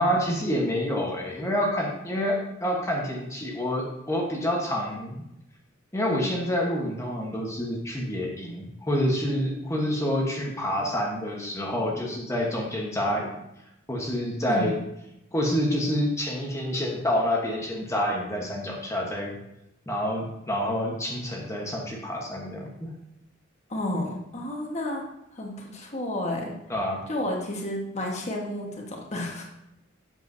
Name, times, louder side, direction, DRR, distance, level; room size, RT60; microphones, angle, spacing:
voice 1, 0.0-5.2 5.9-13.4 13.9-14.8 15.3-19.3 19.9-22.9 26.7-27.0, equal, 15° left, -1 dB, 1.0 m, -27 dB
voice 2, 23.7-25.1 25.3-26.5 27.1-29.4, left 1 dB, 35° left, -1 dB, 1.3 m, -31 dB
7.9 x 7.5 x 2.6 m, 0.85 s
head